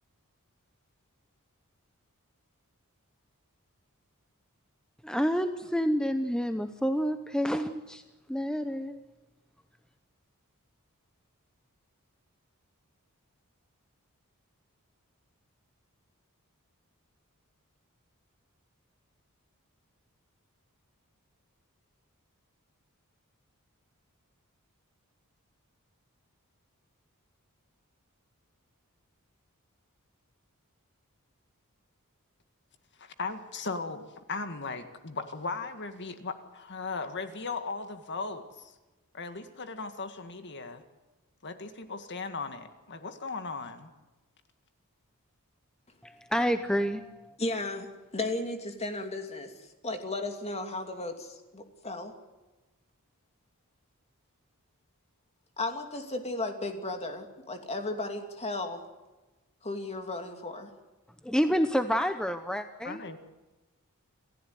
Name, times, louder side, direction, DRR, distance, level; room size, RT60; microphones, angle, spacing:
voice 1, 5.0-8.0 8.3-9.0 46.0-47.3 61.2-63.0, equal, 5° left, 8 dB, 0.8 m, -28 dB
voice 2, 33.0-38.7 39.1-40.8 41.4-43.9 62.8-63.2, left 4 dB, 50° left, 8 dB, 1.9 m, -37 dB
voice 3, 47.4-49.5 49.8-52.1 55.6-58.8 59.6-60.7, left 2 dB, 30° left, 5 dB, 2.8 m, -35 dB
28.0 x 15.5 x 9.5 m, 1.1 s
head